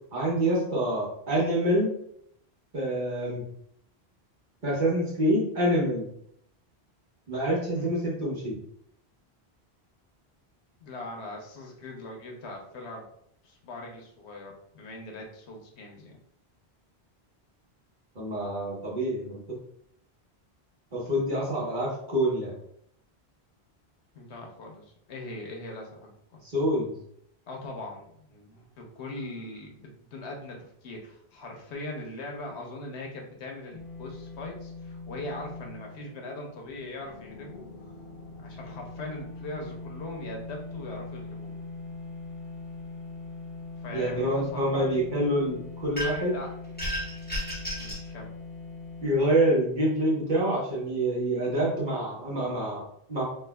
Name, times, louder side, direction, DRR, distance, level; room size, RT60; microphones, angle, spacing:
voice 1, 0.1-1.9 2.7-3.4 4.6-6.1 7.3-8.6 18.1-19.6 20.9-22.5 26.4-26.9 43.9-46.3 49.0-53.2, right 1 dB, 50° right, -5 dB, 1.2 m, -26 dB
voice 2, 10.8-13.1 13.4-16.2 24.1-26.4 27.5-37.7 38.4-41.5 43.8-45.0 46.3-46.5 47.8-48.3, left 2 dB, 90° left, 1 dB, 1.1 m, -40 dB
sound 1, 33.7-49.2, left 3 dB, 40° left, 0.6 m, -42 dB
sound 2, 46.0-46.4 46.8-48.1, equal, 10° left, 1.3 m, -33 dB
4.4 x 2.5 x 2.2 m, 0.70 s
omnidirectional pair, 1.1 m